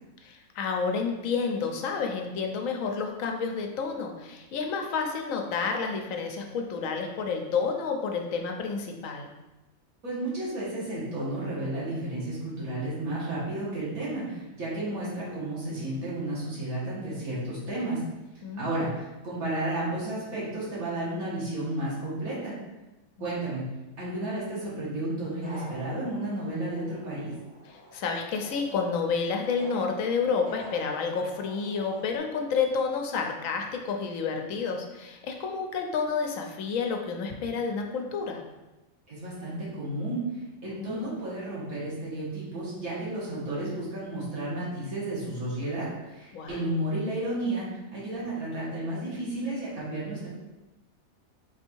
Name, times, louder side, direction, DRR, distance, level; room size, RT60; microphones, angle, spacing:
voice 1, 0.2-9.3 18.4-18.9 23.2-23.4 27.7-38.4 40.7-41.1 46.3-46.7, left 5 dB, 75° left, 3 dB, 1.0 m, -30 dB
voice 2, 10.0-18.0 18.6-22.5 23.2-23.6 24.0-27.3 39.1-50.3, right 1 dB, 85° right, -8 dB, 2.1 m, -32 dB
sound 1, 25.3-32.2, left 1 dB, 5° right, 1.2 m, -48 dB
4.3 x 2.7 x 4.4 m, 1.1 s
omnidirectional pair, 1.4 m